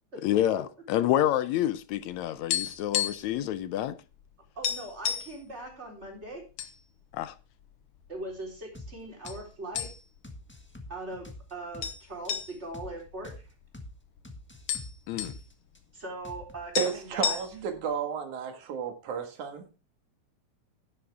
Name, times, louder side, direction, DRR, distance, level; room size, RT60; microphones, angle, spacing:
voice 1, 0.2-4.0 7.1-7.4 15.1-15.3, left 12 dB, 80° left, 2.0 m, -28 dB
sound 1, 2.1-3.4 3.6-3.8 4.2-4.3 4.6-5.4 6.1-6.7 7.1-7.2 7.9-8.6 9.3-9.4 9.8-10.3 10.6-10.7 11.8-13.9 14.2-14.3 14.5-15.4 16.4-16.5 16.7-17.8, left 9 dB, 60° left, 1.8 m, -32 dB
voice 2, 4.6-6.5 8.1-9.9 10.9-13.4 15.9-17.4, right 2 dB, 20° right, 4.2 m, -40 dB
sound 2, 8.7-8.9 9.2-9.4 9.7-9.9 10.2-11.9 12.2-12.3 12.7-12.9 13.2-13.4 13.7-13.9 14.2-15.8 16.2-16.7, left 1 dB, 10° left, 0.5 m, -45 dB
voice 3, 16.8-19.7, right 7 dB, 85° right, 3.3 m, -32 dB
11.5 x 11.0 x 3.5 m
omnidirectional pair, 3.3 m